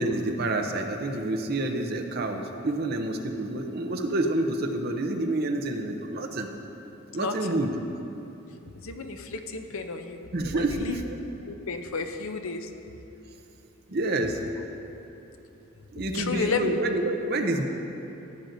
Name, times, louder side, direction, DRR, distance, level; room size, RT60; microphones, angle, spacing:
voice 1, 0.0-6.5 7.1-7.7 10.3-11.2 13.9-14.4 15.9-17.6, right 2 dB, 50° right, 3 dB, 0.7 m, -28 dB
voice 2, 8.8-10.2 10.5-11.0 11.5-12.7 16.1-16.7, left 4 dB, 80° left, 6 dB, 0.7 m, -32 dB
14.5 x 9.1 x 2.7 m, 3.0 s
head